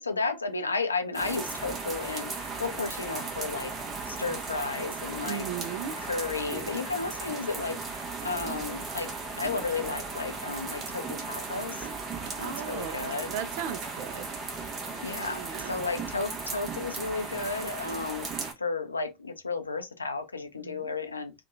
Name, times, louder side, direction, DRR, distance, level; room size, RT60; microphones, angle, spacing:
voice 1, 0.0-3.7 4.1-5.5 6.0-11.9 12.4-13.3 15.0-18.3 18.6-21.3, left 4 dB, 85° left, 0.4 m, -33 dB
sound 1, 1.1-18.5, right 4 dB, 30° right, 0.7 m, -36 dB
voice 2, 5.2-6.0 12.4-14.3 15.2-15.7 20.6-20.8, right 9 dB, 55° right, 0.3 m, -37 dB
2.7 x 2.2 x 2.4 m
figure-of-eight pair, 80°, 0 cm